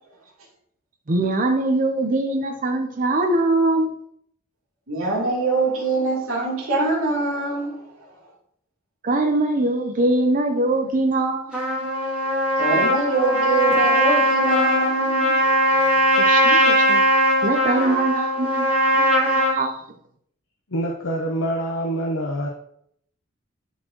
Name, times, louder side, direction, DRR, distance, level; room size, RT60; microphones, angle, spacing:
voice 1, 1.1-3.9 9.0-11.9 16.2-17.0 17.4-19.1 19.3-19.8, right 2 dB, 40° right, 0.7 m, -22 dB
voice 2, 4.9-8.1 12.6-15.9, right 3 dB, 80° right, 2.8 m, -24 dB
Trumpet, 11.5-19.6, equal, 5° right, 2.6 m, -19 dB
voice 3, 20.7-22.5, right 1 dB, 80° left, 0.9 m, -25 dB
11.5 x 4.4 x 3.0 m
head